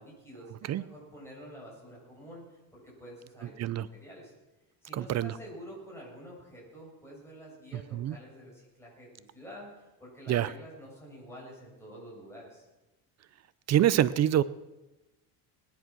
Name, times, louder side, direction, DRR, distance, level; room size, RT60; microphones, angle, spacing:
voice 1, 0.0-4.3 4.8-12.6, equal, 5° left, -5 dB, 7.5 m, -48 dB
voice 2, 4.9-5.3 7.9-8.2 10.3-10.5 13.7-14.4, right 11 dB, 40° right, 16 dB, 0.6 m, -25 dB
20.5 x 10.5 x 6.2 m, 1.0 s
cardioid pair, 130°, 40 cm